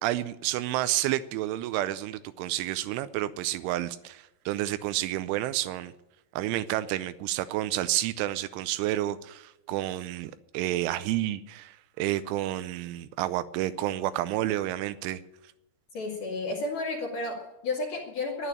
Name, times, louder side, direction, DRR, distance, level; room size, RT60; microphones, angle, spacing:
voice 1, 0.0-5.9 6.4-15.2, right 14 dB, 80° right, 14 dB, 3.0 m, -30 dB
voice 2, 15.9-18.5, left 2 dB, 50° left, -2 dB, 3.2 m, -32 dB
11.0 x 11.0 x 9.9 m, 0.91 s
omnidirectional pair, 5.7 m